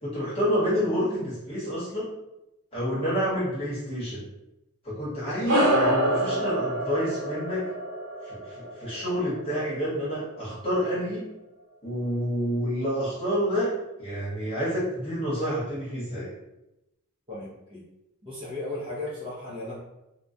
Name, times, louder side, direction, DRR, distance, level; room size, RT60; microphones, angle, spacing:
voice 1, 0.0-2.1 2.7-4.2 4.8-7.6 8.2-11.3 11.8-16.3, equal, 25° left, -9 dB, 1.1 m, -28 dB
sound 1, 5.5-10.2, right 1 dB, 60° right, 1.0 m, -27 dB
voice 2, 17.3-17.8 18.2-19.8, left 2 dB, 25° right, -7 dB, 0.5 m, -36 dB
2.2 x 2.2 x 2.6 m, 0.91 s
head